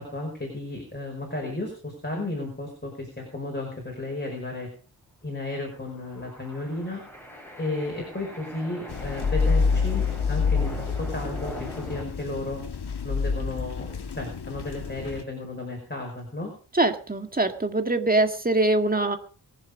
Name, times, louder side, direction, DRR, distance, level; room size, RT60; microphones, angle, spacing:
voice 1, 0.0-4.7 5.2-7.0 7.6-12.6 13.0-16.5, left 2 dB, 25° left, 0 dB, 5.3 m, -33 dB
sound 1, 5.7-12.0, equal, 5° left, 7.3 m, -41 dB
sound 2, 8.9-15.2, left 5 dB, 70° left, 1.4 m, -27 dB
voice 2, 16.7-19.2, right 2 dB, 20° right, 6 dB, 1.9 m, -23 dB
23.0 x 7.7 x 5.1 m, 0.41 s
wide cardioid pair, 85°, 41 cm